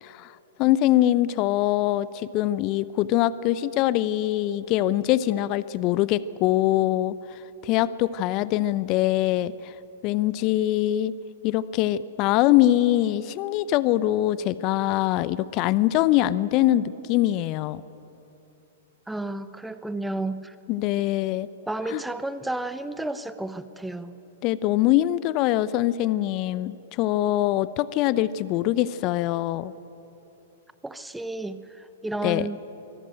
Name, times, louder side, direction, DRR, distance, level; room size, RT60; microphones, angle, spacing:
voice 1, 0.0-9.7 10.0-11.1 11.4-17.8 20.7-21.5 21.9-22.0 24.4-29.7 32.2-32.5, left 14 dB, 40° left, 17 dB, 0.6 m, -23 dB
voice 2, 19.1-20.6 21.7-24.1 30.8-32.6, right 2 dB, 5° right, 12 dB, 0.8 m, -32 dB
23.5 x 14.0 x 9.0 m, 3.0 s
figure-of-eight pair, 110°, 0 cm